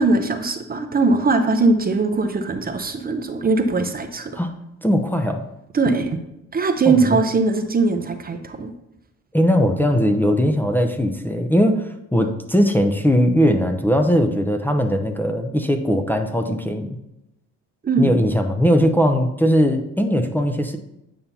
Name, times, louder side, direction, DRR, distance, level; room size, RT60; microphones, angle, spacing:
voice 1, 0.0-4.4 5.7-6.2 6.5-8.7 17.8-18.2, right 3 dB, 30° right, 7 dB, 0.7 m, -20 dB
voice 2, 4.8-5.4 6.8-7.2 9.3-17.0 18.0-20.8, equal, 5° left, 2 dB, 0.6 m, -19 dB
9.0 x 5.5 x 2.8 m, 0.86 s
cardioid pair, 90°, 30 cm